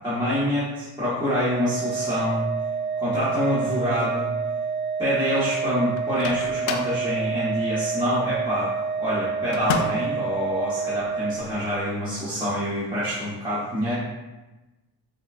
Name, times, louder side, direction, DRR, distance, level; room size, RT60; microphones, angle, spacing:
voice 1, 0.0-2.5 3.0-4.3 5.0-8.7 9.0-13.9, equal, 10° right, -12 dB, 1.2 m, -26 dB
Organ, 1.3-12.0, right 5 dB, 25° right, 0.5 m, -28 dB
Microwave oven, 6.0-7.0 9.5-10.1, left 5 dB, 85° left, 0.5 m, -30 dB
6.8 x 2.3 x 2.5 m, 1.1 s
cardioid pair, 105°, 44 cm